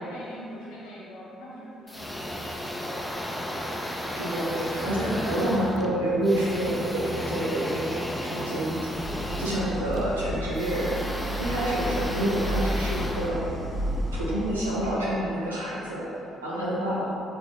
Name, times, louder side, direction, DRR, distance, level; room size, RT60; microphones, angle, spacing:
voice 1, 0.0-2.4, equal, 70° left, -6 dB, 0.9 m, -43 dB
sound 1, 1.9-14.1, equal, 10° left, 0.5 m, -34 dB
voice 2, 4.2-8.9 9.4-11.0 11.4-13.4 14.1-16.0 16.4-17.1, right 1 dB, 90° right, -7 dB, 0.7 m, -28 dB
Idling, 8.9-15.0, equal, 30° right, 1.4 m, -32 dB
4.1 x 3.4 x 3.5 m, 2.7 s
figure-of-eight pair, 45°, 0 cm